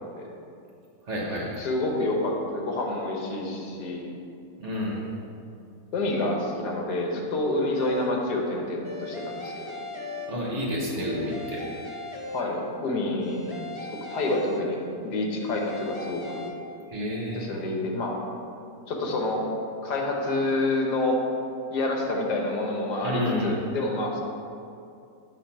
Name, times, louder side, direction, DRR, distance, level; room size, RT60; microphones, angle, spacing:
voice 1, 1.1-1.5 4.6-5.0 10.3-11.6 16.9-17.5 23.0-23.5, equal, 50° right, -4 dB, 1.5 m, -29 dB
voice 2, 1.6-4.1 5.9-9.7 12.3-14.8 15.0-16.4 17.3-18.2 18.9-19.4 19.8-21.2 21.7-24.2, left 2 dB, 80° left, 0 dB, 1.5 m, -28 dB
sound 1, 7.8-8.3 8.8-10.7 11.0-12.8 13.2-15.0 15.4-16.5, left 3 dB, 50° left, 0.3 m, -39 dB
7.7 x 3.4 x 5.7 m, 2.5 s
omnidirectional pair, 1.8 m